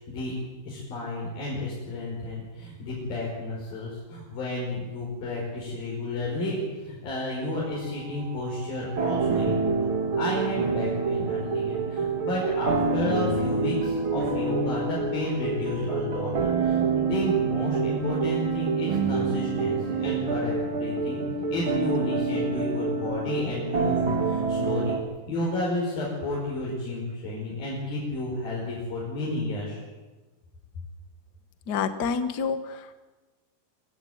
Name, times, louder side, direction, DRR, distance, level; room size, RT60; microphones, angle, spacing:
voice 1, 0.7-21.2 21.5-25.0 25.3-29.8, left 2 dB, 75° left, -5 dB, 7.0 m, -32 dB
sound 1, 7.7-25.0, right 4 dB, 40° right, 2.5 m, -27 dB
voice 2, 31.7-32.9, left 6 dB, 60° left, 10 dB, 1.0 m, -28 dB
24.0 x 16.0 x 9.5 m, 1.2 s
omnidirectional pair, 4.2 m